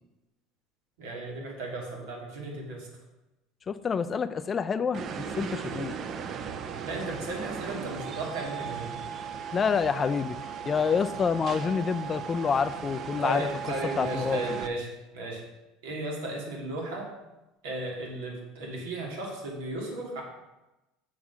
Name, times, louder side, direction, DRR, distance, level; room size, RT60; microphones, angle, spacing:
voice 1, 1.0-2.9 6.8-9.0 13.2-15.4 15.8-17.1 17.6-20.2, right 2 dB, 90° right, -1 dB, 2.8 m, -35 dB
voice 2, 3.7-6.0 9.5-13.5 14.0-14.4, left 6 dB, 25° left, 11 dB, 0.4 m, -28 dB
sound 1, 4.9-14.7, right 7 dB, 40° right, 0.6 m, -37 dB
7.2 x 6.3 x 6.0 m, 1.0 s
supercardioid pair, 130°, 0 cm